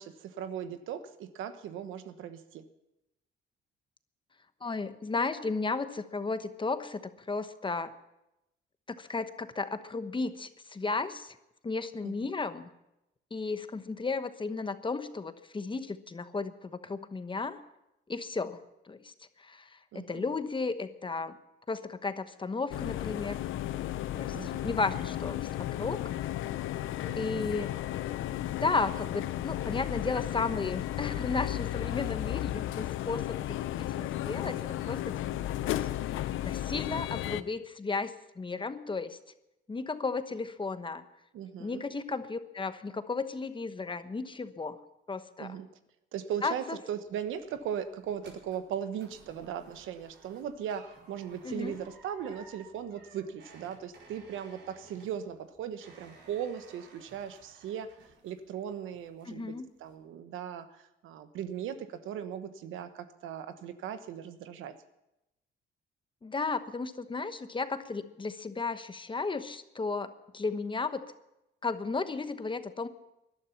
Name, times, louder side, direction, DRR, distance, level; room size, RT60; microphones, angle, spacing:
voice 1, 0.0-2.6 12.0-12.1 19.9-20.2 24.3-24.8 27.0-27.3 41.3-41.8 45.4-45.7 46.1-57.9 58.2-59.5 59.8-64.7, right 9 dB, 85° right, 10 dB, 1.2 m, -38 dB
voice 2, 4.6-7.0 7.3-7.9 8.9-11.4 11.6-12.7 13.3-17.6 18.1-18.6 18.9-19.1 19.4-21.4 21.7-23.4 24.1-25.5 25.8-26.1 27.2-27.8 28.5-35.1 35.6-35.7 36.4-39.2 39.7-41.0 41.6-44.8 45.1-45.6 46.4-46.8 51.4-51.8 59.3-59.7 66.2-71.0 71.6-72.9, left 4 dB, 25° left, 11 dB, 1.0 m, -34 dB
sound 1, 22.7-37.4, left 13 dB, 80° left, 0.7 m, -34 dB
sound 2, 47.1-58.6 58.9-59.4 59.8-59.9, right 3 dB, 65° right, 4.6 m, -56 dB
19.0 x 12.0 x 5.8 m, 0.90 s
cardioid pair, 90°, 20 cm